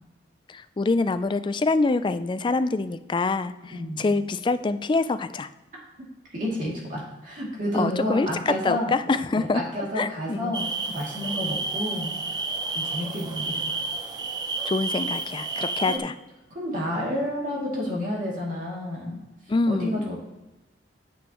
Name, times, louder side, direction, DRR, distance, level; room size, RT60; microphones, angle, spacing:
voice 1, 0.5-5.5 7.7-9.6 10.0-10.5 14.6-16.1 19.5-20.1, left 3 dB, 25° left, 12 dB, 0.3 m, -25 dB
voice 2, 3.7-4.0 6.3-8.9 9.3-12.4 12.7-13.8 15.5-16.0 16.5-19.2 19.7-20.2, left 1 dB, 45° right, -4 dB, 2.6 m, -30 dB
sound 1, 10.5-16.0, right 3 dB, 20° right, 0.6 m, -30 dB
9.4 x 8.0 x 3.0 m, 1.0 s
head